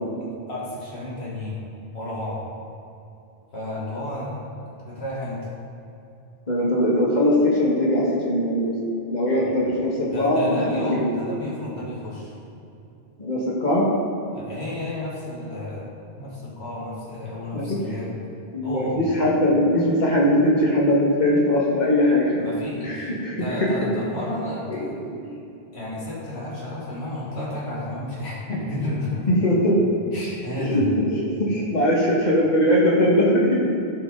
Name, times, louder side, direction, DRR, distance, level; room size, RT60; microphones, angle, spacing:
voice 1, 0.5-1.6 1.9-2.4 3.5-5.5 9.3-9.5 10.0-12.4 14.3-15.9 16.2-18.1 18.6-19.0 22.4-25.0 25.7-29.3 30.1-30.9, left 1 dB, 80° left, -6 dB, 2.3 m, -32 dB
voice 2, 6.5-8.8 9.1-11.1 13.2-13.8 17.5-18.0 18.5-22.4 22.8-23.7 24.7-25.3 29.4-29.8 30.6-33.7, left 1 dB, 45° left, -4 dB, 1.9 m, -21 dB
14.0 x 5.6 x 4.0 m, 2.8 s
omnidirectional pair, 1.1 m